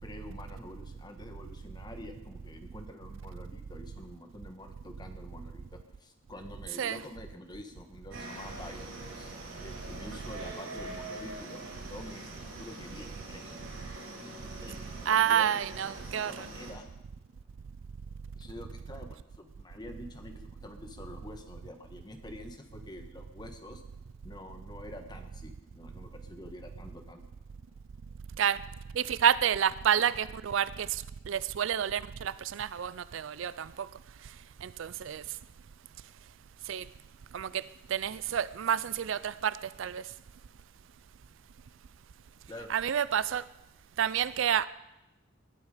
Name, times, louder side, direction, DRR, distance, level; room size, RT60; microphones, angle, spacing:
voice 1, 0.0-8.9 9.1-13.6 14.2-15.5 15.9-16.9 18.3-23.8 24.2-27.3 42.5-42.7, left 1 dB, 20° left, 1.4 m, -47 dB
sound 1, 8.1-16.7, right 2 dB, 80° right, 6.5 m, -44 dB
voice 2, 15.1-16.5 28.4-28.6 29.0-30.9 31.3-33.7 34.6-35.2 36.7-36.8 37.3-37.5 37.9-40.0 42.7-43.4 44.0-44.7, right 8 dB, 65° right, 0.4 m, -29 dB
20.5 x 11.5 x 5.0 m
head